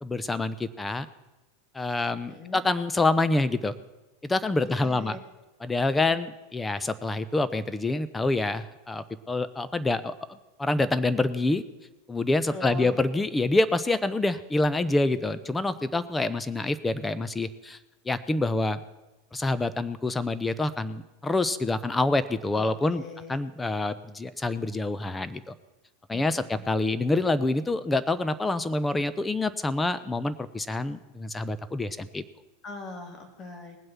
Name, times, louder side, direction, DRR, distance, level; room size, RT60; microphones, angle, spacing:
voice 1, 0.0-1.1 1.7-3.7 4.2-5.2 5.6-10.1 10.6-11.6 12.1-17.8 18.1-18.8 19.3-23.0 23.3-25.6 26.1-32.2, left 2 dB, 10° left, 14 dB, 0.7 m, -27 dB
voice 2, 2.3-2.6 4.8-5.2 12.5-13.0 22.5-23.4 26.1-26.6 32.6-33.8, left 3 dB, 30° left, 4 dB, 2.7 m, -41 dB
19.0 x 7.8 x 5.8 m, 1.1 s
hypercardioid pair, 100°, 0 cm